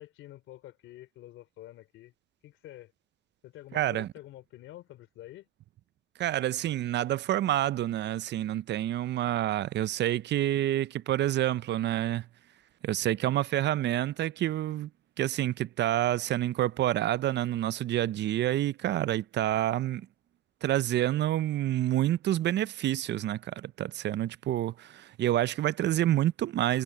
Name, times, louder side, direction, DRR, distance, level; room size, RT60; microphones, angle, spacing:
voice 1, 0.0-2.1 2.4-2.9 3.4-5.5 20.8-21.0, left 14 dB, 90° left, 3.2 m, -48 dB
voice 2, 3.7-4.1 6.2-12.2 12.8-14.9 15.2-20.1 20.6-26.8, right 13 dB, 60° right, 0.5 m, -28 dB
cardioid pair, 90°, 20 cm